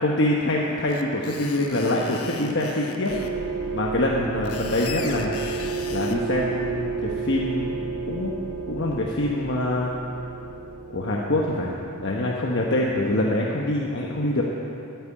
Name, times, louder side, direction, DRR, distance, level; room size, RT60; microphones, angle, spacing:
voice 1, 0.0-3.1 3.7-5.4 5.9-8.3 8.7-9.9 10.9-11.7 12.0-14.4, left 1 dB, 55° left, -2 dB, 1.1 m, -25 dB
Screech, 0.9-3.3 4.2-6.2, left 5 dB, 75° left, 1.0 m, -37 dB
sound 1, 3.1-12.2, right 4 dB, 60° right, 0.8 m, -32 dB
13.0 x 9.4 x 8.7 m, 2.9 s
head